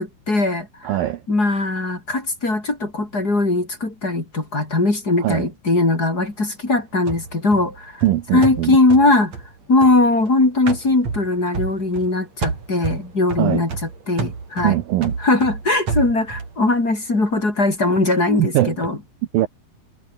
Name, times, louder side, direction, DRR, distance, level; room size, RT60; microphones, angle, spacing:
voice 1, 0.0-1.0 1.3-8.0 8.3-9.3 9.7-13.7 14.1-14.8 15.2-19.0, left 2 dB, 20° left, 4.2 m, -20 dB
voice 2, 0.8-1.2 5.2-5.5 8.0-8.8 13.4-13.6 14.6-15.1 18.4-18.8 19.3-19.5, right 14 dB, 85° right, 2.0 m, -20 dB
sound 1, 7.1-10.3 10.7-12.1 12.4-16.6, right 4 dB, 35° right, 5.3 m, -30 dB
omnidirectional pair, 5.6 m